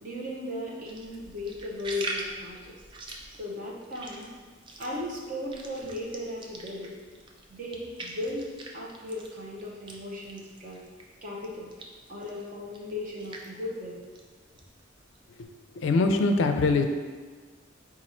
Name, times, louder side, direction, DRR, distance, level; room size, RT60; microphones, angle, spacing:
voice 1, 0.0-2.7 3.4-4.3 4.8-6.9 7.5-8.4 8.7-10.8 11.2-11.7 12.1-14.0, left 1 dB, 40° right, -4 dB, 0.8 m, -36 dB
sound 1, 0.8-11.2 11.4-15.4, right 2 dB, 25° right, 0.3 m, -43 dB
voice 2, 15.8-16.8, left 3 dB, 75° left, 6 dB, 0.4 m, -23 dB
4.2 x 2.5 x 4.2 m, 1.5 s
head